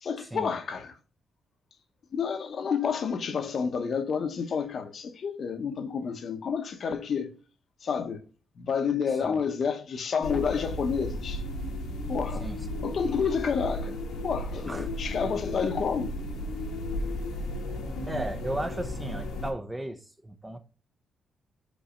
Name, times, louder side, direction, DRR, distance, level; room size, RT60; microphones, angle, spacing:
voice 1, 0.0-0.9 2.1-7.3 7.8-8.2 8.6-11.4 12.1-12.5 12.8-16.1, left 6 dB, 50° left, 0.8 m, -29 dB
sound 1, 10.2-19.5, left 1 dB, 90° left, 1.4 m, -34 dB
voice 2, 18.1-20.6, right 1 dB, 10° right, 0.6 m, -35 dB
5.2 x 4.1 x 4.9 m
cardioid pair, 120°, 0 cm